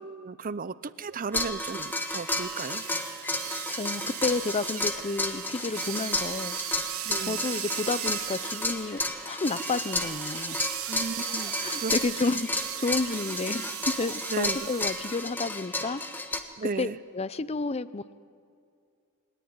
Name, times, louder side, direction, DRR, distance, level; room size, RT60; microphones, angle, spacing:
voice 1, 0.0-2.8 7.1-7.5 10.9-11.9 14.3-14.7 16.6-17.0, right 4 dB, 40° right, 16 dB, 0.6 m, -35 dB
sound 1, 1.3-16.4, left 2 dB, 10° left, 1.2 m, -32 dB
sound 2, 1.5-15.4, right 11 dB, 75° right, 1.3 m, -38 dB
voice 2, 3.5-6.6 7.2-10.7 11.6-13.6 14.0-16.2 16.8-18.2, left 3 dB, 30° left, 16 dB, 0.6 m, -31 dB
21.0 x 19.5 x 9.5 m, 2.3 s
head